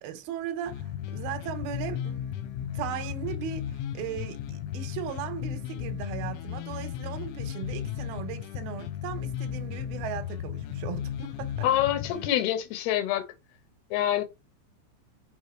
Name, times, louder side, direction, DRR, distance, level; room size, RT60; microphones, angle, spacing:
voice 1, 0.0-2.5 2.7-11.7, right 9 dB, 70° right, 2.4 m, -37 dB
sound 1, 0.7-12.3, left 10 dB, 85° left, 3.1 m, -35 dB
voice 2, 11.6-13.3 13.9-14.2, left 12 dB, 70° left, 2.8 m, -26 dB
6.6 x 4.6 x 4.5 m
omnidirectional pair, 5.6 m